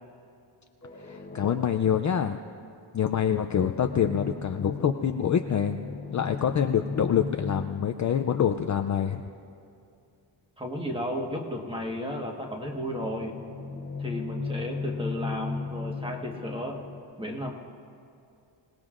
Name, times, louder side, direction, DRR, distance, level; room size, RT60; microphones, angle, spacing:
sound 1, 0.8-2.0 3.2-9.3 12.8-17.0, left 4 dB, 20° left, 0.8 m, -37 dB
voice 1, 1.0-2.4 2.9-5.8 6.1-9.2, left 8 dB, 40° left, 6 dB, 0.4 m, -26 dB
voice 2, 10.6-13.4 14.0-16.8 17.2-17.5, equal, 10° right, 1 dB, 1.4 m, -33 dB
27.0 x 18.5 x 2.5 m, 2.6 s
wide cardioid pair, 170°, 48 cm